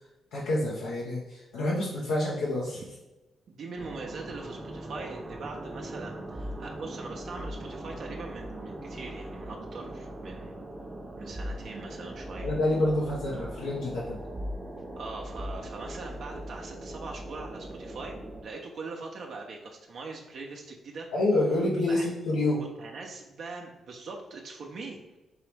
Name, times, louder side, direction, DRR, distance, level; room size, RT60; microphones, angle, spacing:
voice 1, 0.3-2.8 12.4-14.2 21.1-22.6, left 1 dB, 90° left, -5 dB, 0.7 m, -28 dB
voice 2, 3.5-10.6 11.2-12.5 15.0-18.2 18.4-21.1 21.9-22.1 22.4-25.2, right 3 dB, 70° right, 0 dB, 0.6 m, -41 dB
sound 1, 3.8-18.4, right 1 dB, 25° right, 0.7 m, -40 dB
4.7 x 3.0 x 3.3 m, 1.0 s
supercardioid pair, 60°, 0 cm